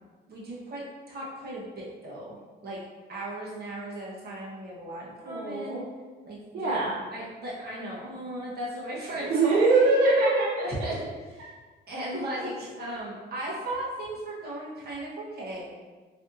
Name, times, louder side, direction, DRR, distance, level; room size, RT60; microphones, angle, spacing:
voice 1, 0.3-2.4 2.6-2.8 3.1-5.8 6.2-6.8 7.1-9.6 10.6-11.0 11.9-15.6, right 1 dB, 50° right, -6 dB, 1.4 m, -36 dB
voice 2, 5.2-5.8 6.5-7.0 9.3-10.7, right 3 dB, 85° right, -6 dB, 0.7 m, -23 dB
3.9 x 3.3 x 2.7 m, 1.4 s
cardioid pair, 90°, 20 cm